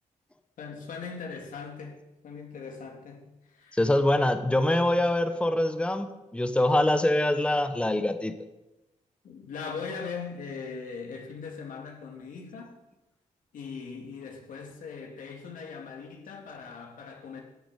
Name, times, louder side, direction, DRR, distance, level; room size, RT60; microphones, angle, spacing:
voice 1, 0.6-3.8 9.2-12.8 13.5-17.4, left 5 dB, 85° left, 2.8 m, -40 dB
voice 2, 3.7-6.1 6.3-8.3, left 1 dB, 10° left, 1.1 m, -24 dB
13.0 x 7.0 x 9.1 m
cardioid pair, 80°, 13 cm